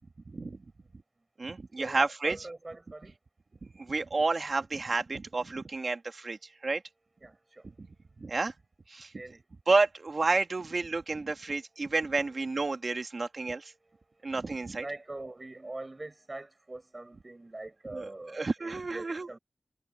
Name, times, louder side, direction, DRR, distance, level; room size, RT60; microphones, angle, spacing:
voice 1, 0.3-0.6 1.4-2.4 3.6-6.8 7.8-7.9 8.2-8.5 8.9-9.1 9.7-13.7 14.2-14.8 17.9-18.1 18.3-19.3, right 3 dB, 55° right, 1.9 m, -30 dB
voice 2, 1.8-3.1 7.2-7.7 9.1-9.4 13.8-14.3 14.8-19.4, right 2 dB, 35° right, 6.9 m, -43 dB
wide cardioid pair, 95°, 0 cm